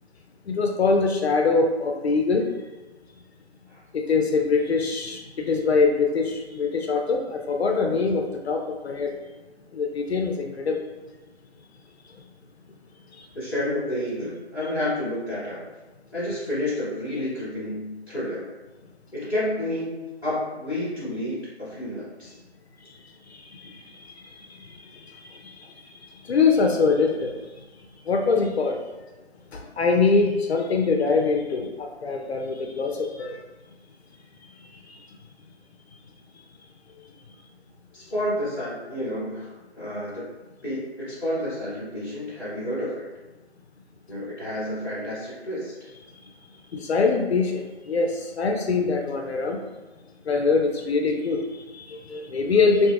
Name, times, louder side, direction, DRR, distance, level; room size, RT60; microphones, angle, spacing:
voice 1, 0.5-2.7 3.9-9.2 9.7-10.8 12.1-12.2 13.1-13.3 22.8-27.7 28.0-28.8 29.5-33.4 34.4-35.2 36.9-37.4 46.0-49.6 50.2-52.9, left 4 dB, 70° left, 3 dB, 0.5 m, -24 dB
voice 2, 13.3-15.6 16.1-18.5 19.1-22.3 37.9-39.5 39.7-40.2 40.6-43.0 44.1-45.7, left 1 dB, 5° right, -19 dB, 1.4 m, -30 dB
3.6 x 2.7 x 2.4 m, 1.2 s
hypercardioid pair, 165°, 33 cm